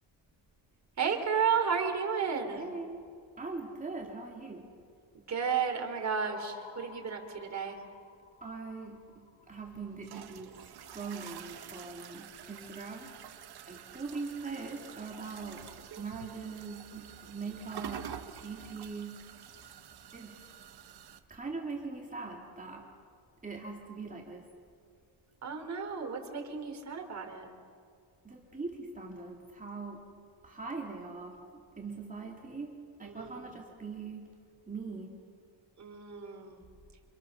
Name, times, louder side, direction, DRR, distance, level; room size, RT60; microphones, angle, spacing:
voice 1, 1.0-2.6 5.1-7.8 25.4-27.5 33.0-33.6 35.8-36.6, right 6 dB, 35° right, 3 dB, 3.8 m, -33 dB
voice 2, 2.5-3.0 3.4-4.7 8.4-10.5 10.9-13.1 13.7-18.1 18.4-19.3 20.1-20.4 20.8-20.9 21.3-22.9 23.4-24.4 28.2-30.0 30.4-31.4 31.8-32.7 33.0-34.4 34.7-35.1, right 4 dB, 15° right, -1 dB, 2.8 m, -41 dB
sound 1, 6.3-10.6, left 6 dB, 85° left, 4.5 m, -55 dB
sound 2, 9.5-21.2, right 9 dB, 50° right, 1.5 m, -48 dB
30.0 x 28.0 x 6.7 m, 2.1 s
cardioid pair, 165°, 48 cm